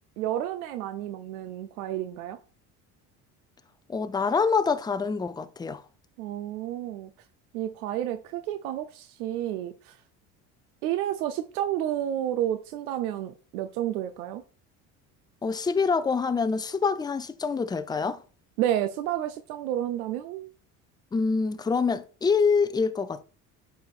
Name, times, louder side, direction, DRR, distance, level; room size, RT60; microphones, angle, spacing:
voice 1, 0.2-2.4 6.2-7.1 7.5-10.0 10.8-14.4 18.6-20.5, right 12 dB, 85° right, 0.6 m, -30 dB
voice 2, 3.9-5.8 15.4-18.2 21.1-23.2, left 5 dB, 10° left, 0.4 m, -26 dB
8.5 x 5.7 x 2.4 m
hypercardioid pair, 70°, 43 cm